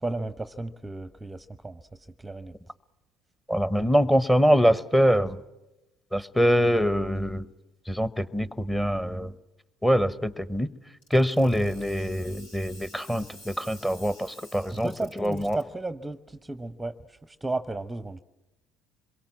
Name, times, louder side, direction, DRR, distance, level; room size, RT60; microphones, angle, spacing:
voice 1, 0.0-1.8 2.2-2.5 14.8-18.2, right 2 dB, 10° right, 12 dB, 0.8 m, -34 dB
voice 2, 3.5-5.4 6.1-7.5 7.9-9.3 9.8-10.7 11.1-14.9 15.2-15.6, equal, 5° left, 14 dB, 1.0 m, -24 dB
sound 1, 11.0-15.6, left 1 dB, 80° left, 6.4 m, -50 dB
26.5 x 22.5 x 7.4 m, 1.0 s
hypercardioid pair, 65°, 0 cm